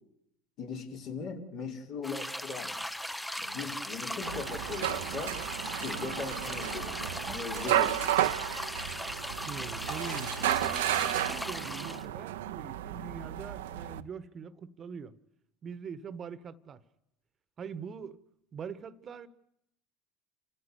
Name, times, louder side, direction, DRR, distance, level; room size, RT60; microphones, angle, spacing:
voice 1, 0.6-2.7 3.4-5.4 5.8-8.0, left 5 dB, 60° left, 5.2 m, -39 dB
sound 1, 2.0-12.1, left 1 dB, 5° left, 0.9 m, -38 dB
sound 2, 4.2-14.0, right 13 dB, 75° right, 0.9 m, -33 dB
voice 2, 9.4-15.2 15.6-16.8 17.6-18.2 18.5-19.3, right 6 dB, 35° right, 1.4 m, -43 dB
29.5 x 15.0 x 8.4 m
hypercardioid pair, 80°, 0 cm